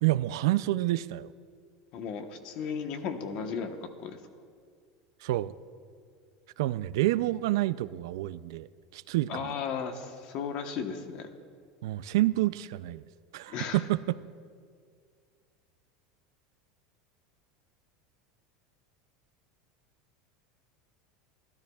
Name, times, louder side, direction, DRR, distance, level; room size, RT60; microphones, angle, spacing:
voice 1, 0.0-1.3 5.2-5.5 6.6-9.5 11.8-13.0 13.3-14.2, right 16 dB, 80° right, 16 dB, 0.4 m, -28 dB
voice 2, 1.9-4.2 9.3-11.3 13.5-13.8, left 6 dB, 45° left, 6 dB, 1.1 m, -35 dB
27.0 x 13.0 x 2.4 m, 2.1 s
supercardioid pair, 165°, 2 cm